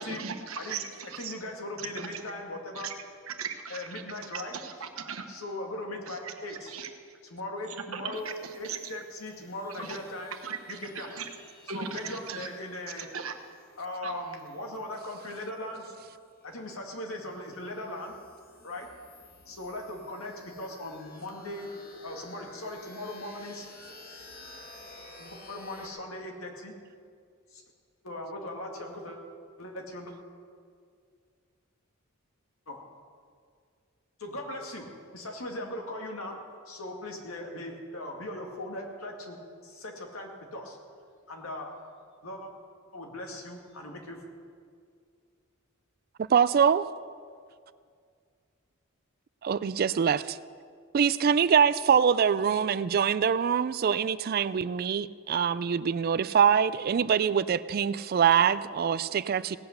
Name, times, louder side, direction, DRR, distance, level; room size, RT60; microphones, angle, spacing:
voice 1, 0.0-1.3 1.8-2.2 2.7-2.9 3.3-4.0 4.3-5.3 6.1-7.2 7.7-9.0 9.7-10.0 10.3-11.3 11.7-12.5 13.0-13.4 14.0-14.1, right 6 dB, 85° right, 5 dB, 1.2 m, -39 dB
voice 2, 1.2-2.9 3.7-4.5 5.3-6.7 7.3-8.3 8.6-10.3 10.7-11.2 11.7-13.1 13.8-15.8 16.4-18.2 18.6-18.9 19.5-21.7 22.0-23.7 25.2-26.7 27.5-27.6 28.0-29.2 29.6-30.1 32.7-32.8 34.2-34.9 35.1-36.4 36.7-39.4 39.6-40.8 41.3-41.7 42.2-42.5 42.9-44.2, left 1 dB, 80° left, 1 dB, 2.0 m, -39 dB
sound 1, 8.1-25.9, left 2 dB, 45° left, 1.5 m, -53 dB
voice 3, 46.2-46.9 49.4-50.4 50.9-59.6, right 7 dB, 45° right, 16 dB, 0.3 m, -24 dB
17.5 x 8.0 x 6.6 m, 2.2 s
head